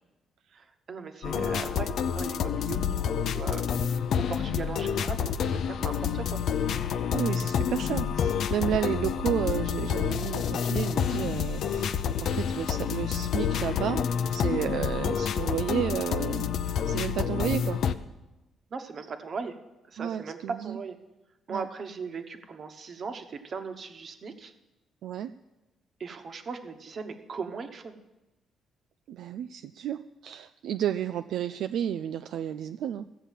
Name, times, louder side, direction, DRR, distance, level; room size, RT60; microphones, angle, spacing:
voice 1, 0.5-3.6 4.1-6.7 18.7-19.5 19.9-20.4 20.6-21.0 21.5-24.5 26.0-28.0, right 5 dB, 50° right, 7 dB, 1.1 m, -38 dB
sound 1, 1.2-17.9, left 8 dB, 70° left, 0.5 m, -28 dB
voice 2, 7.1-14.0 14.3-17.8 20.0-20.8 21.5-21.7 25.0-25.3 29.1-33.1, right 10 dB, 75° right, 9 dB, 0.3 m, -32 dB
14.5 x 6.9 x 7.4 m, 1.0 s
cardioid pair, 90°, 0 cm